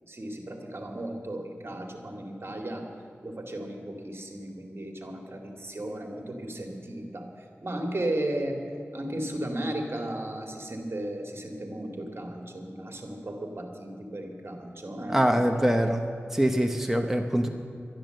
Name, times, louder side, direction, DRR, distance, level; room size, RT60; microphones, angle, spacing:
voice 1, 0.1-2.9 3.2-7.3 7.6-8.7 8.9-15.6, right 1 dB, 55° right, 3 dB, 2.2 m, -35 dB
voice 2, 15.1-16.0 16.3-17.5, equal, 5° right, 4 dB, 1.0 m, -24 dB
12.0 x 10.5 x 7.8 m, 2.6 s
wide cardioid pair, 50°, 5 cm